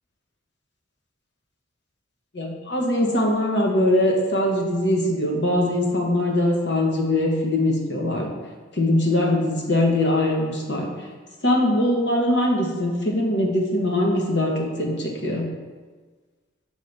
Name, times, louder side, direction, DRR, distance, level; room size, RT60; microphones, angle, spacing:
voice 1, 2.3-8.3 8.7-10.9 11.4-15.5, left 1 dB, 60° left, 0 dB, 1.0 m, -22 dB
5.5 x 3.3 x 5.3 m, 1.4 s
head